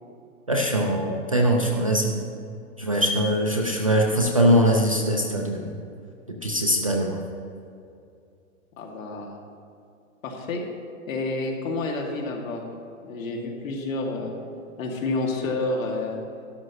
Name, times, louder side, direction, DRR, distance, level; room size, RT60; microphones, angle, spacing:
voice 1, 0.5-2.2 2.8-5.7 6.4-7.2, equal, 25° right, 0 dB, 0.3 m, -22 dB
voice 2, 8.8-9.3 10.2-10.6 11.1-12.6 13.0-14.4 14.8-16.2, left 2 dB, 70° left, 0 dB, 2.3 m, -29 dB
12.5 x 12.0 x 3.0 m, 2.5 s
hypercardioid pair, 170°, 42 cm